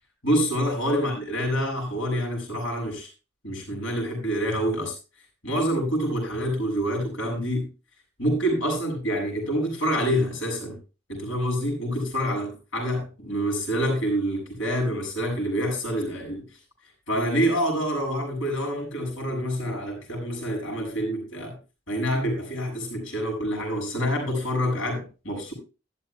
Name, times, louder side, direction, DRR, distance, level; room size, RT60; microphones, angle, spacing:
voice 1, 0.2-3.1 3.4-4.9 5.4-7.7 8.2-10.8 11.1-16.5 17.1-21.5 21.9-25.5, equal, 65° left, 1 dB, 7.3 m, -27 dB
15.0 x 12.5 x 2.4 m, 0.31 s
head